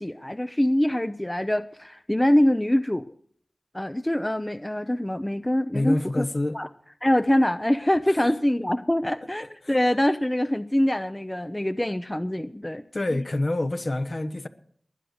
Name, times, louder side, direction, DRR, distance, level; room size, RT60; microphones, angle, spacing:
voice 1, 0.0-3.1 3.7-6.3 6.5-6.7 7.0-12.8 13.1-13.2, left 1 dB, 15° left, 0.6 m, -24 dB
voice 2, 5.7-6.6 8.2-8.3 9.6-9.7 12.9-14.5, left 2 dB, 50° left, 1.1 m, -27 dB
20.0 x 9.5 x 6.5 m
cardioid pair, 40°, 0 cm